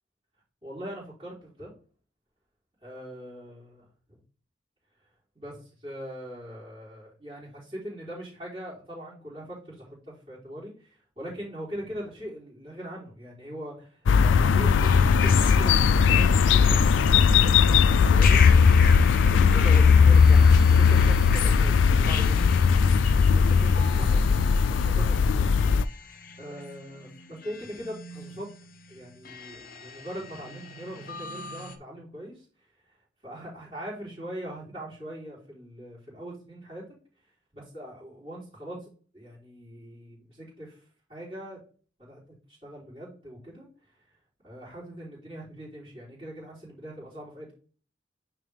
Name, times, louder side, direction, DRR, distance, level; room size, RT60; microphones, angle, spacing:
voice 1, 0.6-1.7 2.8-4.2 5.3-18.4 19.2-22.7 23.1-24.2 24.6-25.7 25.9-28.5 28.9-32.5 32.9-33.0 33.2-36.8 37.5-40.8 41.1-41.6 42.0-44.0 44.4-47.5, equal, 30° right, -9 dB, 3.6 m, -41 dB
sound 1, 14.1-25.8, left 6 dB, 80° left, 0.3 m, -19 dB
sound 2, 14.6-31.8, left 6 dB, 45° left, 0.7 m, -37 dB
9.0 x 3.6 x 3.4 m, 0.41 s
head